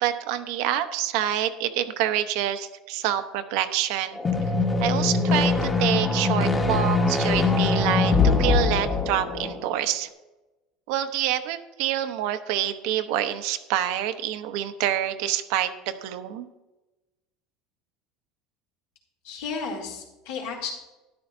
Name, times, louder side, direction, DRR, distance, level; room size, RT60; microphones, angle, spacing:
voice 1, 0.0-4.2 4.8-10.1 10.9-16.5, right 11 dB, 70° right, 9 dB, 0.8 m, -27 dB
sound 1, 4.2-9.8, left 3 dB, 15° left, 1.2 m, -22 dB
voice 2, 19.2-20.7, left 5 dB, 85° left, -2 dB, 4.0 m, -33 dB
13.0 x 11.5 x 2.7 m, 1.0 s
cardioid pair, 155°, 0 cm